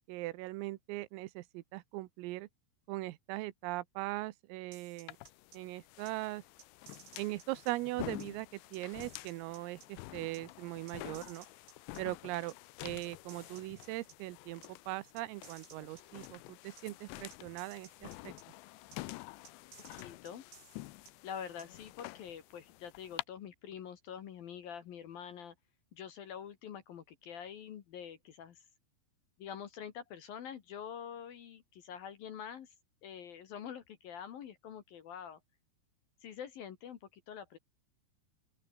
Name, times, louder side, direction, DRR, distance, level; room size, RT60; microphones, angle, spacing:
voice 1, 0.0-2.5 2.9-5.2 5.5-6.4 7.2-11.5 12.0-12.5 12.8-18.4, right 19 dB, 90° right, 3.7 m, -40 dB
sound 1, 4.7-5.6 6.1-6.2 6.6-7.7 8.2-8.3 8.7-9.9 10.3-10.4 10.9-12.0 12.5-12.6 13.0-14.2 14.6-14.7 15.2-16.3 16.8-16.9 17.3-18.4 18.9-19.0 19.4-21.1 21.6-21.7, right 7 dB, 55° right, 5.8 m, -57 dB
sound 2, 5.1-23.2, left 20 dB, 80° left, 2.6 m, -49 dB
voice 2, 19.9-20.4 21.2-25.5 25.9-28.6 29.4-32.7 33.0-35.4 36.2-37.6, left 8 dB, 60° left, 2.8 m, -46 dB
open air
omnidirectional pair, 5.9 m